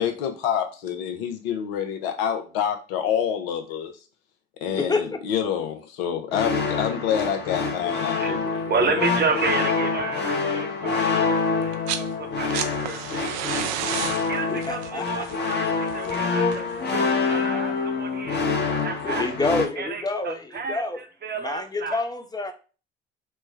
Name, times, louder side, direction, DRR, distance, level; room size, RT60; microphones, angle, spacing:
voice 1, 0.0-3.9 4.6-8.6 8.8-9.0, left 8 dB, 75° left, 6 dB, 0.7 m, -27 dB
voice 2, 4.7-5.2 14.5-15.3 19.0-21.0 21.4-22.5, left 3 dB, 15° left, 6 dB, 0.6 m, -28 dB
sound 1, 6.3-19.7, left 4 dB, 35° left, 1.0 m, -26 dB
voice 3, 8.1-13.5 14.3-19.3 19.8-22.0, right 4 dB, 35° right, 5 dB, 0.8 m, -31 dB
sound 2, 11.6-12.1 12.3-17.2 18.5-18.6, right 10 dB, 65° right, 0.4 m, -32 dB
3.3 x 2.1 x 3.2 m, 0.35 s
hypercardioid pair, 50°, 30 cm